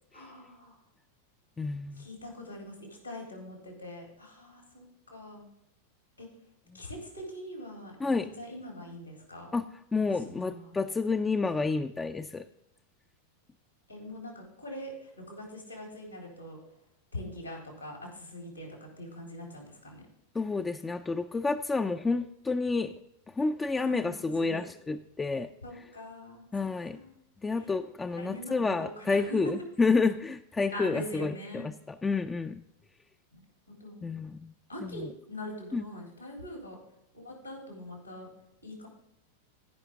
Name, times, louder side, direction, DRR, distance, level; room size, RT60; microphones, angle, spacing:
voice 1, 0.1-0.7 2.0-5.5 6.2-6.3 6.7-9.5 10.3-10.7 13.9-16.6 17.1-20.0 23.8-24.1 24.4-24.6 25.6-26.5 26.9-27.2 28.2-29.4 30.7-31.7 33.4-34.0 34.7-36.8 37.1-38.3 38.6-38.9, left 1 dB, 90° left, 0 dB, 3.7 m, -43 dB
voice 2, 1.6-2.0 8.0-8.3 9.5-9.7 9.9-12.4 20.3-22.9 23.4-25.5 26.5-27.0 27.4-32.6 34.0-34.5 34.8-35.1 35.7-35.8, left 4 dB, 15° left, 7 dB, 0.4 m, -29 dB
15.0 x 5.7 x 3.6 m, 0.83 s
figure-of-eight pair, 90°, 0 cm